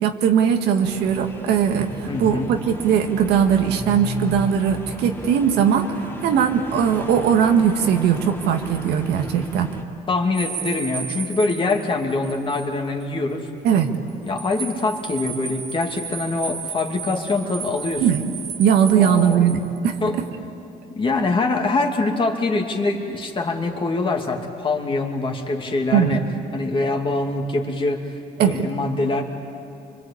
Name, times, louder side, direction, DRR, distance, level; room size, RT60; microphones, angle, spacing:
voice 1, 0.0-1.9 2.2-9.7 13.6-13.9 18.0-18.2 18.6-19.9 25.9-26.2 28.4-28.6, right 8 dB, 80° right, 4 dB, 1.9 m, -19 dB
sound 1, 0.8-9.8, left 1 dB, 15° left, 2.2 m, -36 dB
voice 2, 2.1-2.6 10.1-13.5 14.3-18.1 19.0-19.5 20.0-20.2 21.0-26.2 26.5-28.0 28.4-29.2, left 3 dB, 30° left, 2 dB, 2.6 m, -24 dB
sound 2, 10.3-12.7 13.0-13.1 14.1-19.8, right 6 dB, 40° right, 1.2 m, -34 dB
25.5 x 24.0 x 8.6 m, 2.7 s
cardioid pair, 110°, 17 cm